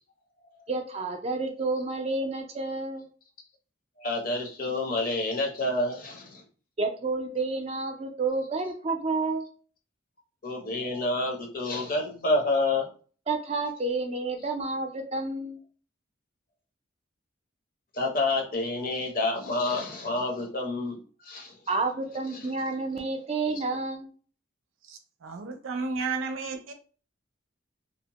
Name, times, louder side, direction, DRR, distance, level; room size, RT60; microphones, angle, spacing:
voice 1, 0.7-3.1 6.8-9.5 13.3-15.6 21.7-24.1, right 3 dB, 30° right, 4 dB, 0.4 m, -30 dB
voice 2, 4.0-6.4 10.4-12.9 17.9-21.6 22.3-22.5, left 2 dB, 45° left, 1 dB, 0.6 m, -28 dB
voice 3, 24.8-26.7, right 4 dB, 90° right, 6 dB, 0.5 m, -33 dB
2.7 x 2.1 x 2.8 m, 0.40 s
head